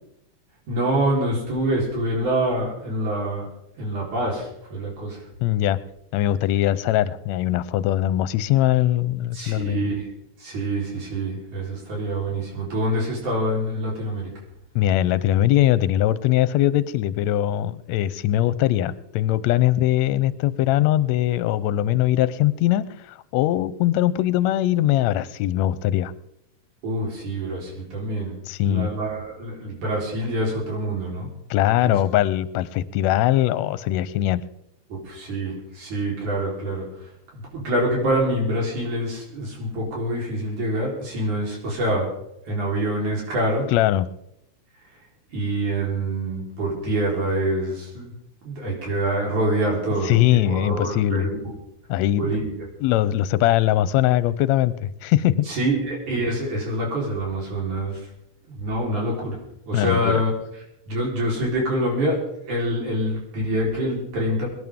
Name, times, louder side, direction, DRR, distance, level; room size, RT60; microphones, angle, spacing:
voice 1, 0.7-3.5 3.8-5.2 9.3-10.1 10.4-14.3 26.8-31.3 31.8-32.0 35.0-36.9 37.3-42.1 42.5-43.7 45.3-48.1 48.4-51.5 52.2-52.7 55.5-58.0 58.5-59.4 59.7-60.3 60.9-62.2 62.4-64.5, right 1 dB, 90° right, -2 dB, 5.6 m, -26 dB
voice 2, 5.4-5.8 6.1-9.8 14.7-22.8 23.3-26.1 28.5-28.9 31.5-34.4 43.7-44.1 50.0-51.3 51.9-52.3 52.8-55.5 59.7-60.1, left 13 dB, 80° left, 16 dB, 1.8 m, -21 dB
24.0 x 11.0 x 3.7 m, 0.80 s
omnidirectional pair, 3.3 m